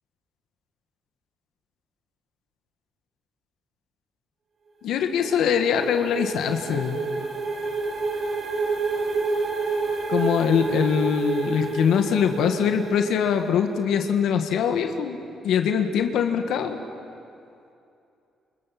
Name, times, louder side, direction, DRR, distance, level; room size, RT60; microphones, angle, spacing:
voice 1, 4.8-7.0 10.1-15.2 15.4-16.8, left 7 dB, 80° left, 6 dB, 1.8 m, -23 dB
sound 1, 4.9-13.6, right 3 dB, 55° right, 7.1 m, -29 dB
28.5 x 27.5 x 6.1 m, 2.7 s
cardioid pair, 90°, 0 cm